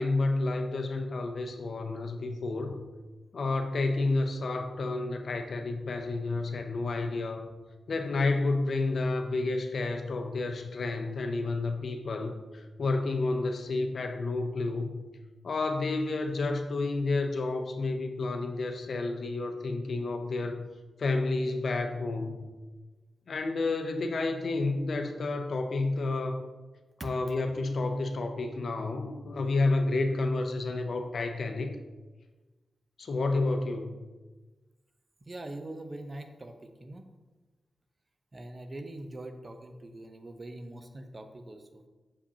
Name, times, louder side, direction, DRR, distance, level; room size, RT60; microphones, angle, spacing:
voice 1, 0.0-2.8 3.3-7.5 7.9-15.0 15.4-20.7 21.0-22.4 23.3-26.4 27.0-31.7 33.0-34.0, left 3 dB, 70° left, 6 dB, 0.6 m, -30 dB
voice 2, 35.2-37.0 38.3-41.8, right 1 dB, 35° right, 7 dB, 0.6 m, -43 dB
7.1 x 4.9 x 2.8 m, 1.2 s
cardioid pair, 60°, 0 cm